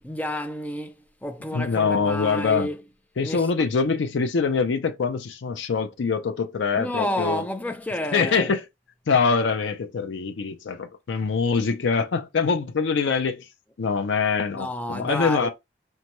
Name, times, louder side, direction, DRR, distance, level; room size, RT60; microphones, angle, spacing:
voice 1, 0.0-2.8 3.2-3.7 6.7-8.5 14.5-15.5, left 1 dB, 10° left, 0.4 m, -30 dB
voice 2, 1.5-2.7 3.2-7.4 8.1-8.6 9.1-13.5 13.8-15.5, left 5 dB, 80° left, 0.5 m, -24 dB
5.3 x 2.2 x 2.9 m
head